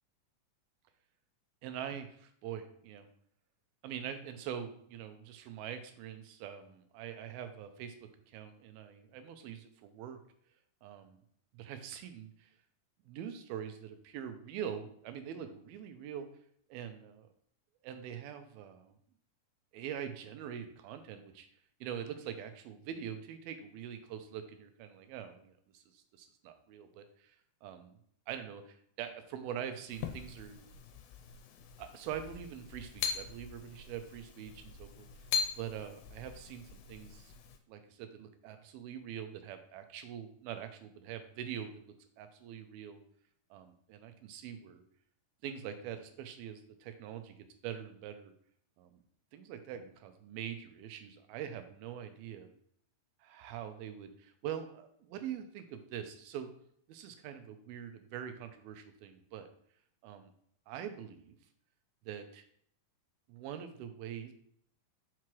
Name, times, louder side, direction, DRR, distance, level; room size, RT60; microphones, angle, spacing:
voice 1, 1.6-3.1 3.8-8.0 8.3-10.2 10.8-11.2 11.5-12.5 13.1-16.3 16.7-17.3 17.8-18.9 19.7-21.5 21.8-27.4 27.6-28.0 28.3-30.7 31.8-35.1 35.5-37.3 37.7-43.0 43.5-44.8 45.4-48.3 48.8-49.0 49.3-52.5 53.2-56.5 56.9-59.5 60.0-60.3 60.7-61.4 62.1-62.4 63.3-64.3, right 9 dB, 85° right, 8 dB, 2.5 m, -44 dB
sound 1, 29.9-37.6, left 6 dB, 85° left, 2.4 m, -41 dB
6.0 x 5.7 x 3.1 m, 0.65 s
omnidirectional pair, 4.2 m